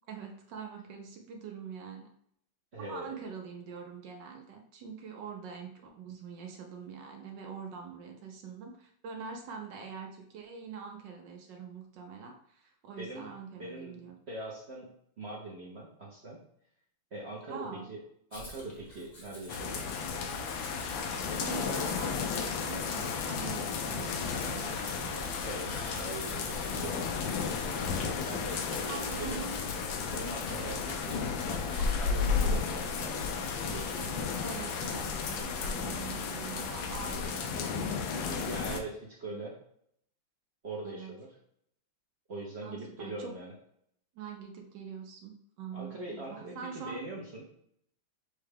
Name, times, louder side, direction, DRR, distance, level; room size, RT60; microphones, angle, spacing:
voice 1, 0.1-2.1 2.8-14.2 17.5-17.9 21.4-25.1 28.9-29.6 34.4-38.3 38.6-38.8 39.3-39.4 40.8-41.1 42.6-43.3 44.1-47.1, right 6 dB, 70° right, 3 dB, 1.3 m, -44 dB
voice 2, 2.7-3.2 13.0-13.3 13.6-14.9 15.2-16.4 17.1-18.0 18.3-19.8 25.4-27.1 28.3-29.4 30.1-34.2 38.3-39.6 40.6-41.3 42.3-43.5 45.7-47.4, right 2 dB, 50° right, -4 dB, 0.8 m, -42 dB
Domestic sounds home sounds, 18.3-34.8, left 1 dB, 30° left, 0.9 m, -50 dB
sound 1, 19.5-38.8, left 5 dB, 75° left, 1.3 m, -33 dB
6.4 x 2.3 x 3.3 m, 0.70 s
omnidirectional pair, 2.2 m